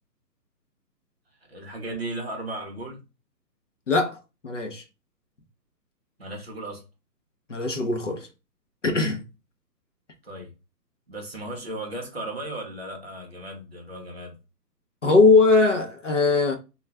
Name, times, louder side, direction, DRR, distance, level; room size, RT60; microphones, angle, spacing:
voice 1, 1.5-3.0 6.2-6.8 10.2-10.5 11.1-14.4, right 1 dB, 40° right, 0.6 m, -35 dB
voice 2, 3.9-4.8 7.5-8.3 8.8-9.2 15.0-16.6, left 3 dB, 50° left, 0.5 m, -20 dB
2.3 x 2.1 x 3.2 m
hypercardioid pair, 175°, 50 cm